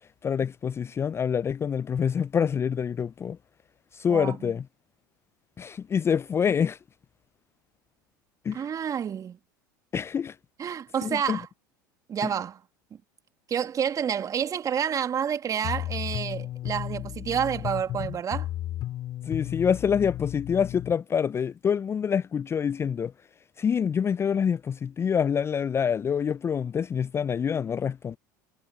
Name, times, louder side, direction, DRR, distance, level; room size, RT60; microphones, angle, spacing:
voice 1, 0.2-3.4 3.9-4.6 5.6-6.8 8.4-8.7 9.9-10.4 11.0-11.4 12.2-12.3 19.2-23.1 23.6-28.2, left 7 dB, 25° left, 0.4 m, -26 dB
voice 2, 4.1-4.5 8.5-9.4 10.6-11.5 12.1-12.6 13.5-18.5, right 8 dB, 35° right, 2.3 m, -29 dB
sound 1, 15.6-21.0, left 13 dB, 45° left, 3.7 m, -34 dB
figure-of-eight pair, 75°, 11 cm